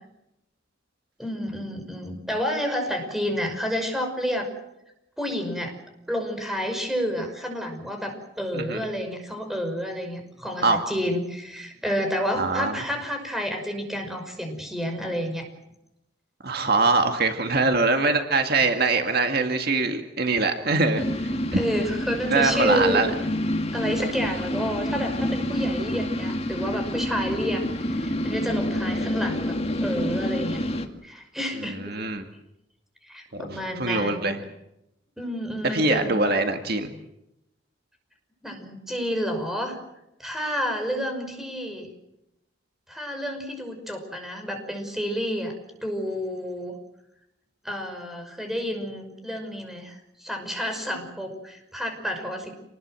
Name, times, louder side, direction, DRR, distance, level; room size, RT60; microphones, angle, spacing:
voice 1, 1.2-4.5 5.2-5.7 6.1-15.5 21.5-23.0 23.7-30.6 31.0-32.0 33.0-34.3 35.2-36.3 38.4-39.8 40.2-41.9 42.9-45.5 45.8-46.7 47.6-52.6, equal, ahead, 4 dB, 5.8 m, -30 dB
voice 2, 8.5-8.8 10.6-10.8 12.4-12.7 16.4-21.6 22.3-23.1 31.8-32.2 33.3-33.5 33.8-34.4 35.7-36.9, right 3 dB, 55° right, 5 dB, 2.0 m, -23 dB
sound 1, 20.9-30.9, left 1 dB, 35° left, 2.3 m, -28 dB
27.5 x 20.5 x 7.7 m, 0.85 s
head